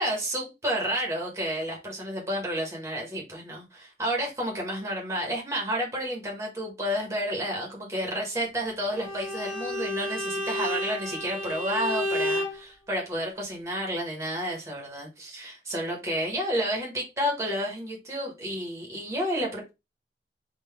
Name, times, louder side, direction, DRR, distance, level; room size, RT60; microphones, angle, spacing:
voice 1, 0.0-19.7, equal, 15° right, 1.2 m, -31 dB
Bowed string instrument, 8.9-12.6, equal, 5° left, 1.5 m, -31 dB
3.8 x 2.5 x 3.4 m
head